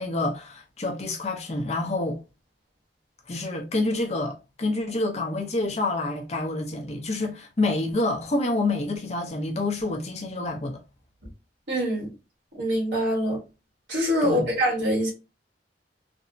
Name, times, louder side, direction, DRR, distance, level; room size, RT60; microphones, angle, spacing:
voice 1, 0.0-2.2 3.3-10.8 14.2-14.5, left 2 dB, 35° left, 0.6 m, -28 dB
voice 2, 11.7-12.1 12.6-13.4 13.9-15.1, equal, 70° right, 1.3 m, -24 dB
3.3 x 2.0 x 2.6 m
head